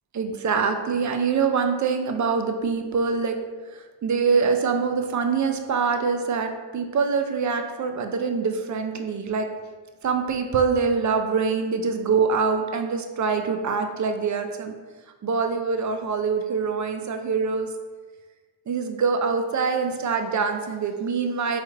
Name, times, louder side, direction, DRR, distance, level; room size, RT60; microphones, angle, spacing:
voice 1, 0.1-3.3 3.7-9.5 10.0-14.7 15.2-17.7 18.7-21.6, right 5 dB, 40° right, 5 dB, 0.4 m, -24 dB
4.1 x 3.1 x 2.4 m, 1.4 s
cardioid pair, 70°, 48 cm